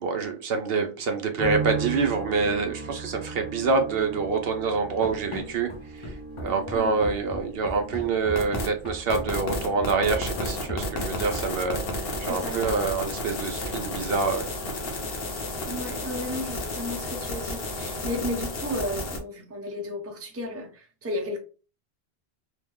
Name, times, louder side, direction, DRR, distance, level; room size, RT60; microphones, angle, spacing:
voice 1, 0.0-6.1 6.4-14.5, right 4 dB, 70° right, 0.8 m, -26 dB
sound 1, 1.4-16.6 16.9-17.8, right 4 dB, 40° right, 1.2 m, -39 dB
Run, 5.0-11.6, left 1 dB, 35° left, 0.6 m, -37 dB
sound 2, 8.3-8.7 9.1-19.2, left 2 dB, 70° left, 1.0 m, -32 dB
voice 2, 12.3-12.7 15.7-21.4, left 1 dB, 15° right, 0.6 m, -33 dB
3.0 x 2.1 x 3.5 m
omnidirectional pair, 1.0 m